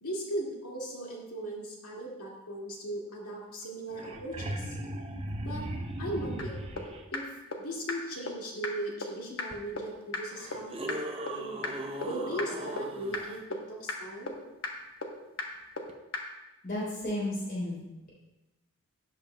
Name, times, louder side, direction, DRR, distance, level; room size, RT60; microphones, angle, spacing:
voice 1, 0.0-4.8 5.4-5.7 6.0-6.7 7.1-7.3 7.6-11.0 11.3-11.6 12.0-14.4, right 1 dB, 90° left, -2 dB, 2.1 m, -38 dB
sound 1, 3.6-3.7 3.9-7.0 9.5-9.6 10.3-13.4 15.9-16.0, right 1 dB, 25° right, 0.6 m, -38 dB
sound 2, 6.4-6.5 6.8-6.9 7.1-7.2 7.5-7.6 7.9-8.0 8.3-8.4 8.6-8.7 9.0-9.1 9.4-9.5 9.8-9.9 10.1-10.2 10.5-10.6 10.9-11.0 11.3-11.4 11.6-11.7 12.0-12.1 12.4-12.5 12.8-12.9 13.1-13.2 13.5-13.6 13.9-14.0 14.3-14.4 14.6-14.7 15.0-15.1 15.4-15.5 15.8-15.9 16.1-16.2, left 3 dB, 65° left, 1.1 m, -33 dB
voice 2, 16.6-17.8, left 1 dB, 40° left, -6 dB, 3.3 m, -33 dB
12.5 x 8.6 x 2.2 m, 1.0 s
head